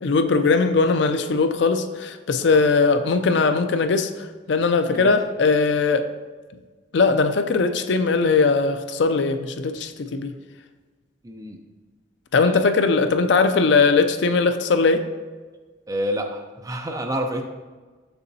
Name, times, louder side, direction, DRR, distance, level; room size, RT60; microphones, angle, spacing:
voice 1, 0.0-6.1 6.9-10.3 12.3-15.0, left 4 dB, 65° left, 8 dB, 0.4 m, -20 dB
voice 2, 11.2-11.6 12.4-12.6 15.9-17.4, equal, 20° right, 3 dB, 0.5 m, -28 dB
6.7 x 6.2 x 2.7 m, 1.4 s
head